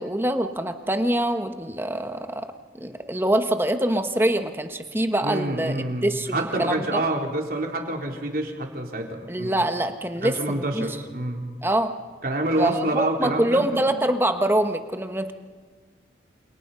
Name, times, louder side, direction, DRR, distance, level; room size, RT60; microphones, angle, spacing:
voice 1, 0.0-2.5 2.8-7.0 9.3-10.9 11.6-11.9 12.6-15.3, right 1 dB, 10° right, 7 dB, 1.3 m, -25 dB
voice 2, 5.2-9.5 10.2-11.4 12.2-13.8, right 1 dB, 50° right, 2 dB, 4.0 m, -27 dB
28.5 x 28.0 x 5.6 m, 1.5 s
head